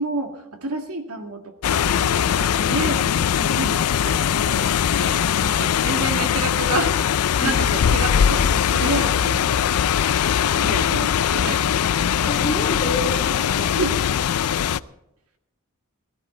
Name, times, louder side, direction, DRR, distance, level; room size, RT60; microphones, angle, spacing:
voice 1, 0.0-4.7 5.0-6.9 7.2-9.9 10.4-11.7 13.8-13.9, right 2 dB, 85° right, 5 dB, 2.1 m, -30 dB
sound 1, 1.6-14.8, left 8 dB, 85° left, 0.4 m, -21 dB
voice 2, 7.4-7.8 12.2-14.1, left 1 dB, 30° left, 2 dB, 2.2 m, -30 dB
16.5 x 13.0 x 4.3 m, 0.85 s
head